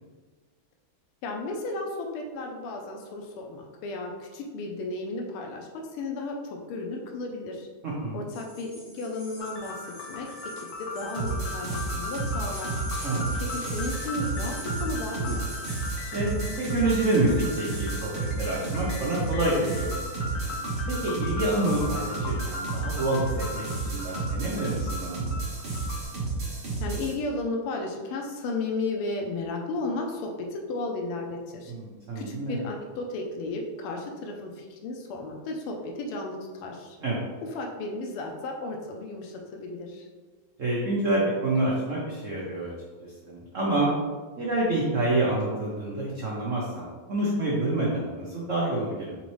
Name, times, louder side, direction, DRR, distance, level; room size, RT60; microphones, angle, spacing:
voice 1, 1.2-7.7 8.1-10.3 10.6-12.8 13.5-15.5 26.8-31.7 32.1-37.0 37.5-40.1, left 2 dB, 85° left, 2 dB, 1.5 m, -34 dB
voice 2, 7.8-8.2 13.0-13.3 16.1-16.4 16.7-18.1 18.4-19.9 20.2-20.6 20.9-25.3 31.7-32.6 37.0-37.2 40.6-42.7 43.0-43.9 44.4-49.2, right 2 dB, 75° right, -5 dB, 0.7 m, -27 dB
sound 1, 8.3-19.4, left 1 dB, 40° left, 1.6 m, -46 dB
sound 2, 9.4-26.0, left 2 dB, 70° left, 0.9 m, -38 dB
sound 3, 11.1-27.1, right 3 dB, 40° right, 0.8 m, -32 dB
4.1 x 3.9 x 3.1 m, 1.4 s
omnidirectional pair, 2.3 m